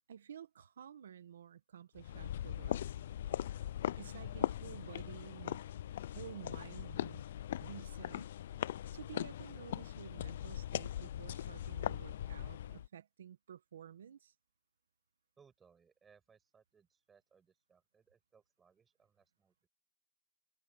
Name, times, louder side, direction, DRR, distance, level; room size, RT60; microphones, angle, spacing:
voice 1, 0.1-2.8 4.0-5.6 6.1-7.2 7.6-8.3 8.9-14.3, right 9 dB, 85° right, 1.5 m, -52 dB
sound 1, 2.0-12.9, left 11 dB, 70° left, 0.5 m, -40 dB
voice 2, 15.4-19.7, right 6 dB, 15° right, 7.0 m, -68 dB
hypercardioid pair, 125°, 0 cm